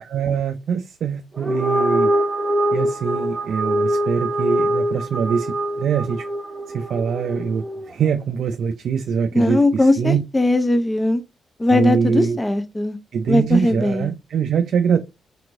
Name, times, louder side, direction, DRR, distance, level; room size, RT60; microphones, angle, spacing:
voice 1, 0.1-2.1 2.7-6.2 6.7-10.2 11.7-12.4 13.1-15.0, right 6 dB, 70° right, 0.3 m, -23 dB
sound 1, 1.3-7.9, right 1 dB, 20° right, 0.7 m, -23 dB
voice 2, 9.3-11.2 11.6-13.0 13.3-14.1, left 2 dB, 20° left, 0.6 m, -19 dB
3.5 x 2.9 x 2.5 m
supercardioid pair, 50°, 0 cm